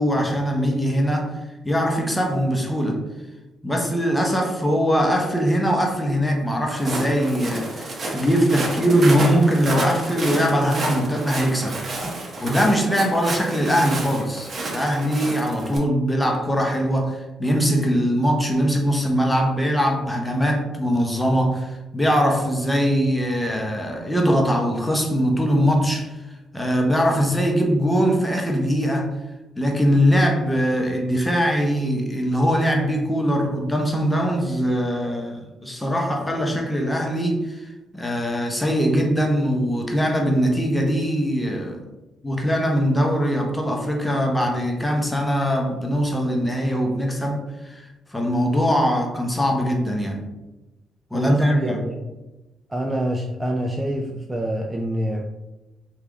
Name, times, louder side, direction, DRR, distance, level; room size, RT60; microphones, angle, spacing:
voice 1, 0.0-1.3 1.6-3.0 3.6-11.8 12.4-26.1 26.5-29.1 29.6-41.8 42.2-50.2 51.1-51.8, equal, 10° left, 1 dB, 0.7 m, -21 dB
Walk footsteps, 6.7-15.8, right 2 dB, 45° right, 0.8 m, -30 dB
voice 2, 51.1-52.0 52.7-55.3, right 1 dB, 15° right, 0 dB, 0.3 m, -25 dB
3.3 x 2.4 x 3.5 m, 1.0 s
cardioid pair, 90°, 0 cm